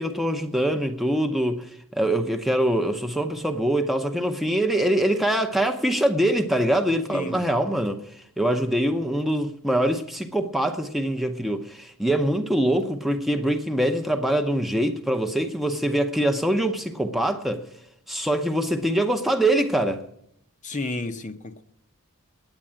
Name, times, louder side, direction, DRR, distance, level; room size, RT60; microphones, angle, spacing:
voice 1, 0.0-17.7 18.1-20.0, right 1 dB, ahead, 0.7 m, -24 dB
voice 2, 7.1-7.5 20.6-21.6, left 2 dB, 35° left, 0.7 m, -32 dB
9.6 x 9.0 x 8.5 m
head